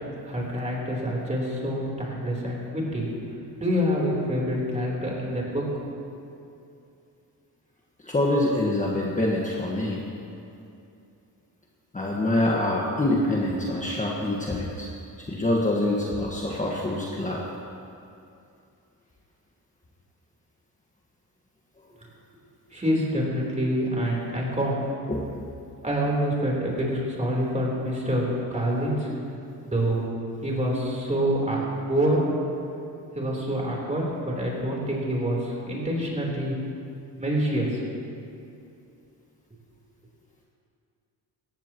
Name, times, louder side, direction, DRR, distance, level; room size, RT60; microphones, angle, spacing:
voice 1, 0.3-3.1 3.6-5.6 22.7-24.8 25.8-28.3 28.5-29.1 29.6-30.0 30.4-32.2 33.1-36.5 37.2-37.8, equal, 15° right, -3 dB, 3.7 m, -26 dB
voice 2, 8.0-10.0 11.9-14.9 15.3-17.4 25.1-25.2, left 1 dB, 20° left, -3 dB, 1.5 m, -25 dB
18.0 x 15.5 x 3.0 m, 2.6 s
cardioid pair, 110°, 40 cm